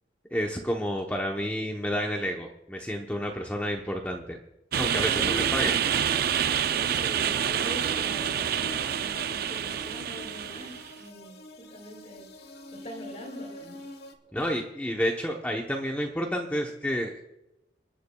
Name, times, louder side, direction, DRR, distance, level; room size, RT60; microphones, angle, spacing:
voice 1, 0.3-4.4 4.8-5.7 14.3-17.2, equal, 10° left, 1 dB, 0.9 m, -30 dB
sound 1, 4.7-14.2, left 1 dB, 60° left, 1.4 m, -46 dB
sound 2, 4.7-10.9, right 9 dB, 55° right, 0.4 m, -27 dB
voice 2, 5.1-5.6 6.5-12.5 12.7-13.9, equal, 40° left, -2 dB, 2.4 m, -42 dB
28.5 x 10.0 x 2.3 m, 0.92 s
head